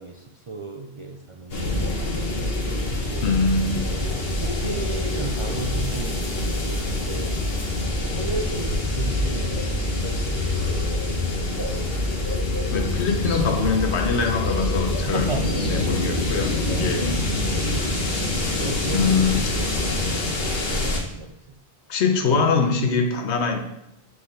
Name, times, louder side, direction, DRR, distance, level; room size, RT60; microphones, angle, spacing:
voice 1, 0.0-1.8 3.0-3.3 4.0-4.1 4.3-7.3 8.0-11.2 15.1-16.0 16.3-17.0 17.3-17.8 18.6-19.1 19.6-19.9 20.4-21.3, right 3 dB, 45° right, 2 dB, 0.4 m, -35 dB
sound 1, 1.5-21.0, left 2 dB, 65° left, 1.3 m, -25 dB
voice 2, 3.2-3.9 12.7-15.3 15.7-17.2 18.9-19.5 21.9-23.6, left 5 dB, 85° left, 4 dB, 1.1 m, -23 dB
7.5 x 4.8 x 3.3 m, 0.81 s
omnidirectional pair, 1.1 m